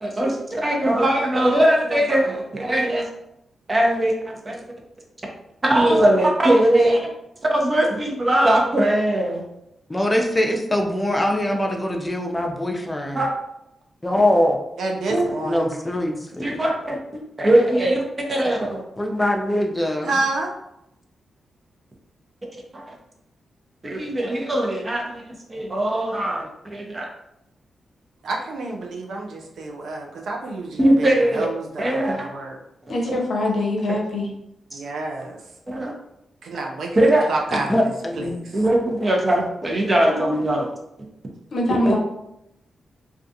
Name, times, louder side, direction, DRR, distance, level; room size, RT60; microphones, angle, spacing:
voice 1, 0.0-3.0 3.7-4.6 5.6-7.1 7.5-9.5 13.1-13.3 15.1-15.3 16.4-18.8 22.7-22.9 23.8-27.1 30.8-31.5 31.8-32.3 32.9-33.2 34.7-34.8 35.7-35.9 36.9-37.2 38.5-40.7 41.7-42.0, right 1 dB, 35° right, 0 dB, 0.7 m, -20 dB
voice 2, 9.9-13.2 14.0-14.6 15.4-16.6 19.0-20.2 37.5-38.3, left 1 dB, 20° left, 2 dB, 0.5 m, -22 dB
voice 3, 14.8-15.7 20.0-20.5 28.2-32.6 34.7-35.4 36.4-37.9 38.2-38.4, right 2 dB, 80° right, 0 dB, 0.4 m, -29 dB
voice 4, 32.9-34.3 41.5-42.0, left 1 dB, 70° left, -1 dB, 0.6 m, -23 dB
2.4 x 2.3 x 2.7 m, 0.83 s
supercardioid pair, 45°, 0 cm